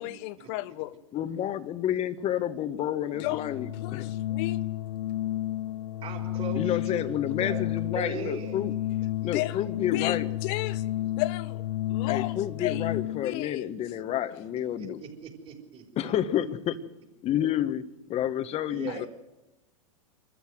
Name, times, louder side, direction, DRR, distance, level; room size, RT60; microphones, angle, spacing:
voice 1, 0.0-1.0 3.2-3.5 3.7-4.6 9.2-11.6 11.9-12.9 13.2-13.6 18.9-19.1, left 18 dB, 55° left, 1.1 m, -34 dB
voice 2, 1.1-4.1 6.5-8.7 9.2-10.3 12.1-15.0 16.0-16.8 17.2-17.8 18.1-19.1, left 11 dB, 35° left, 1.5 m, -30 dB
Organ, 3.1-13.4, left 14 dB, 80° left, 1.2 m, -32 dB
voice 3, 6.0-7.6 7.9-8.6 9.2-9.3 14.8-16.1 18.7-19.1, right 7 dB, 30° right, 4.7 m, -39 dB
25.5 x 13.5 x 7.8 m
hypercardioid pair, 105°, 18 cm